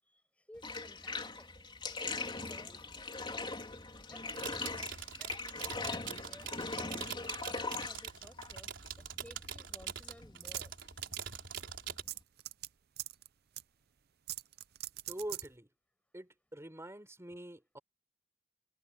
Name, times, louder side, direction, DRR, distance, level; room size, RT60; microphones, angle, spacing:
voice 1, 0.0-1.5 2.2-3.7 4.1-7.4 7.8-10.7, left 1 dB, 5° left, 5.7 m, -58 dB
Bathtub (filling or washing), 0.6-12.2, left 3 dB, 25° left, 3.9 m, -42 dB
sound 1, 4.2-12.0, right 8 dB, 75° right, 4.3 m, -43 dB
sound 2, 10.4-11.3 11.6-11.7 12.1-12.7 13.0-13.3 13.6-13.7 14.3-15.5, right 15 dB, 55° right, 0.6 m, -41 dB
voice 2, 15.1-15.7 16.1-17.8, right 1 dB, 15° right, 4.0 m, -45 dB
head